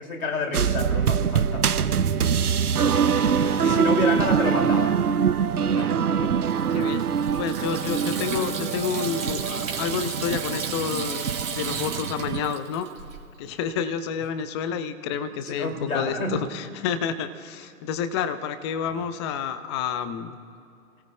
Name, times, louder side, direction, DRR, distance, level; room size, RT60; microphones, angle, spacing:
voice 1, 0.0-1.7 3.6-5.0 5.8-6.4 13.8-13.9 15.5-16.4 18.9-19.0, left 2 dB, 70° left, 3 dB, 2.7 m, -29 dB
sound 1, 0.5-12.5, right 7 dB, 90° right, 0.7 m, -24 dB
voice 2, 3.2-3.9 4.4-4.6 6.7-7.0 7.4-12.9 13.4-20.4, left 7 dB, 20° left, 11 dB, 0.5 m, -30 dB
Water tap faucet / Sink (filling or washing), 6.4-13.2, right 6 dB, 65° right, 2.6 m, -34 dB
28.5 x 17.5 x 2.3 m, 2.5 s
figure-of-eight pair, 120°, 44 cm